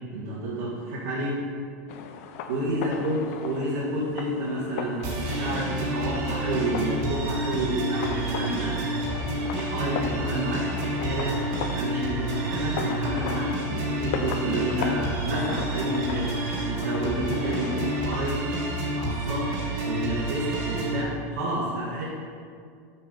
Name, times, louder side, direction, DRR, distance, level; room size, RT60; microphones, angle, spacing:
voice 1, 0.1-1.4 2.5-8.8 9.3-11.4 11.7-16.3 16.6-18.4 18.8-19.5 19.9-22.1, right 1 dB, 85° right, -10 dB, 2.1 m, -30 dB
sound 1, 1.9-18.3, left 6 dB, 60° left, 0.6 m, -38 dB
sound 2, 5.0-21.0, right 1 dB, 40° right, 1.5 m, -29 dB
6.5 x 5.5 x 5.6 m, 2.2 s
supercardioid pair, 165°, 9 cm